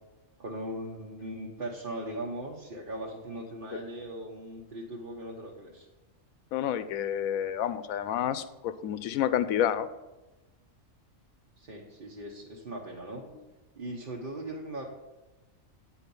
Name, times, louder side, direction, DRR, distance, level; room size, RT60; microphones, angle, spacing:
voice 1, 0.4-5.9 11.6-13.2 13.8-14.8, right 1 dB, 40° right, -2 dB, 1.1 m, -39 dB
voice 2, 6.5-9.9, left 10 dB, 85° left, 13 dB, 1.0 m, -29 dB
9.2 x 4.4 x 6.9 m, 1.0 s
omnidirectional pair, 1.4 m